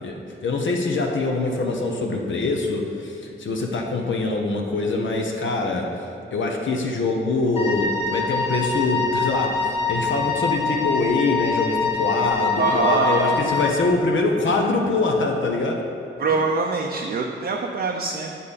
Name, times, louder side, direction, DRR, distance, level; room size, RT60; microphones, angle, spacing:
voice 1, 0.0-5.9 6.3-15.8, left 3 dB, 70° left, 1 dB, 0.9 m, -24 dB
Wind instrument woodwind instrument, 7.6-13.9, left 5 dB, 30° left, 1.1 m, -25 dB
voice 2, 12.6-13.4 16.2-18.4, right 4 dB, 50° right, 1 dB, 0.6 m, -23 dB
8.3 x 5.3 x 4.1 m, 2.7 s
wide cardioid pair, 100°, 20 cm